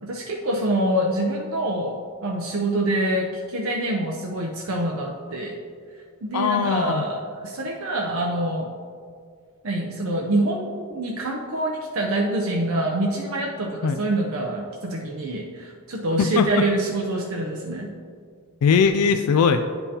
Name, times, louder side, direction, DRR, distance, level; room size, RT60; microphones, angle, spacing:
voice 1, 0.0-5.5 6.2-8.7 9.6-17.9, right 1 dB, 70° right, -1 dB, 0.6 m, -26 dB
voice 2, 6.3-7.0 13.8-14.0 16.2-16.5 18.6-19.6, left 6 dB, 90° left, 7 dB, 0.3 m, -20 dB
9.7 x 5.3 x 2.8 m, 2.1 s
head